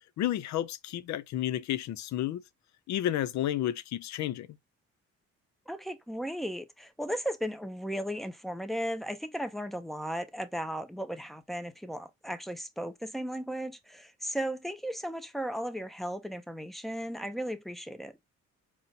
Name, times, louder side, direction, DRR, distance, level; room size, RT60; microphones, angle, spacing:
voice 1, 0.2-2.4 2.9-4.5, left 12 dB, 70° left, 0.5 m, -31 dB
voice 2, 5.7-18.2, equal, ahead, 0.5 m, -36 dB
4.2 x 2.1 x 3.9 m
cardioid pair, 90°, 30 cm